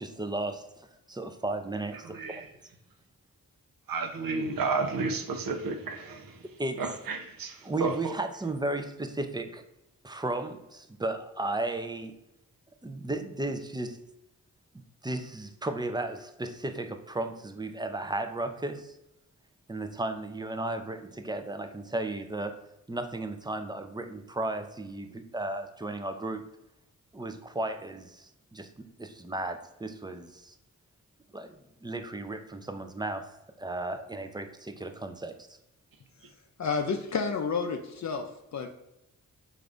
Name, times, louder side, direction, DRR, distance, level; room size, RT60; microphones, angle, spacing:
voice 1, 0.0-2.4 6.6-6.8 7.6-9.6 10.0-12.1 12.8-14.0 15.0-19.0 19.7-22.6 22.9-26.4 27.1-28.7 29.0-30.6 31.3-35.6, right 2 dB, 10° right, 0.4 m, -35 dB
voice 2, 2.1-2.4 3.9-6.4 6.8-8.1, right 3 dB, 70° right, 0.6 m, -32 dB
voice 3, 36.6-38.3 38.5-38.7, left 5 dB, 50° left, 0.5 m, -30 dB
3.7 x 2.6 x 3.4 m
cardioid pair, 50°, 35 cm